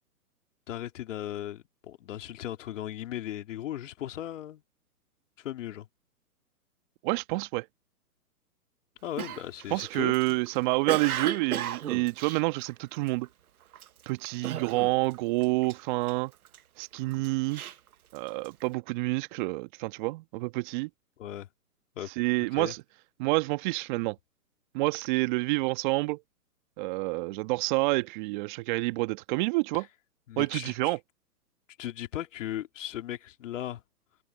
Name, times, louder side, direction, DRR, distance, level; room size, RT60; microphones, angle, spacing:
voice 1, 0.7-4.6 5.4-5.9 9.0-10.4 14.4-14.6 21.2-21.5 21.9-22.1 22.5-22.7 29.7-29.8 30.3-31.0 31.8-33.8, left 12 dB, 50° left, 3.0 m, -37 dB
voice 2, 7.0-7.6 9.7-13.3 14.1-16.3 16.8-17.6 18.1-20.9 22.2-22.8 23.2-24.2 24.7-26.2 26.8-29.9 30.4-31.0, right 24 dB, 30° right, 1.4 m, -28 dB
Cough, 9.2-13.3 13.7-14.0 14.4-15.2 15.4-16.6 17.1-18.6, right 10 dB, 65° right, 1.1 m, -35 dB
hypercardioid pair, 130°, 46 cm